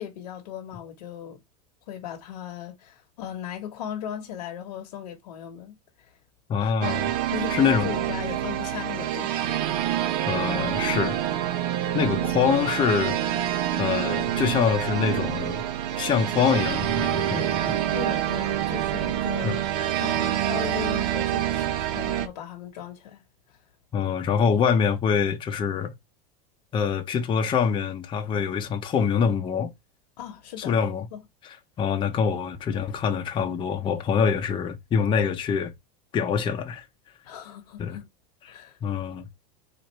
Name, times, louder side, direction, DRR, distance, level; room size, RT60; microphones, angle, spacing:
voice 1, 0.0-1.4 1.9-6.1 6.6-6.7 7.3-9.5 17.9-19.7 20.0-23.2 30.2-31.2 37.2-38.1 38.5-38.8, left 10 dB, 85° left, 1.1 m, -37 dB
voice 2, 6.5-7.1 7.5-7.9 10.3-11.2 11.9-13.2 13.8-15.6 16.0-17.8 19.4-19.6 23.9-25.9 26.7-29.7 30.6-31.1 31.4-35.7 36.1-36.8 37.8-38.0 38.8-39.3, left 6 dB, 25° left, 0.6 m, -25 dB
sound 1, 6.8-22.3, right 11 dB, 70° right, 0.7 m, -27 dB
4.3 x 2.5 x 3.1 m
supercardioid pair, 130°, 21 cm